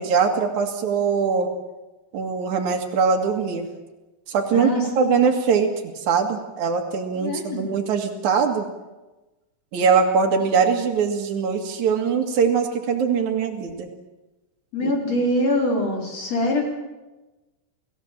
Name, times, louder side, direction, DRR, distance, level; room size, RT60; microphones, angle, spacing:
voice 1, 0.0-1.5 2.1-3.7 4.3-4.7 5.0-5.7 6.1-8.7 9.7-13.9 14.8-14.9, right 6 dB, 75° right, 2 dB, 3.4 m, -22 dB
voice 2, 4.5-5.1 7.1-7.7 14.7-16.6, left 1 dB, 55° left, 0 dB, 5.3 m, -24 dB
29.5 x 16.5 x 7.5 m, 1.1 s
omnidirectional pair, 3.4 m